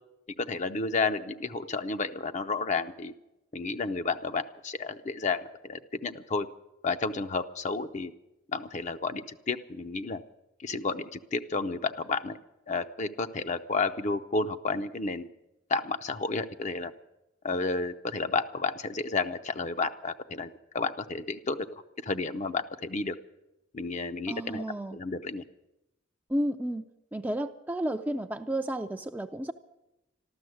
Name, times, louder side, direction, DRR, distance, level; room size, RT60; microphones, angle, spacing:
voice 1, 0.4-3.1 3.5-6.5 6.8-8.1 8.5-10.2 10.6-12.4 12.7-15.3 15.7-16.9 17.4-21.7 22.0-23.1 23.7-24.6 24.9-25.4, left 4 dB, 40° left, 8 dB, 0.6 m, -31 dB
voice 2, 24.3-25.0 26.3-26.9 27.1-29.5, right 1 dB, 10° right, 6 dB, 0.4 m, -32 dB
13.0 x 13.0 x 7.8 m, 0.92 s
head